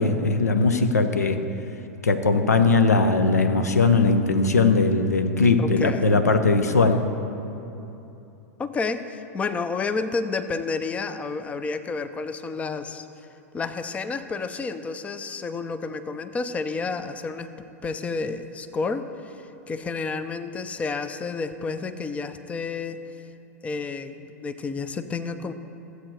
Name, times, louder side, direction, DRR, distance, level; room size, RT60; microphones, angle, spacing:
voice 1, 0.0-1.4 2.0-7.0, left 3 dB, 80° left, 8 dB, 0.8 m, -20 dB
voice 2, 5.6-6.1 8.6-13.0 13.5-17.5 17.8-19.4 19.7-23.0 23.6-25.5, left 4 dB, 15° left, 11 dB, 0.5 m, -30 dB
14.0 x 8.1 x 4.6 m, 2.9 s
figure-of-eight pair, 95°, 9 cm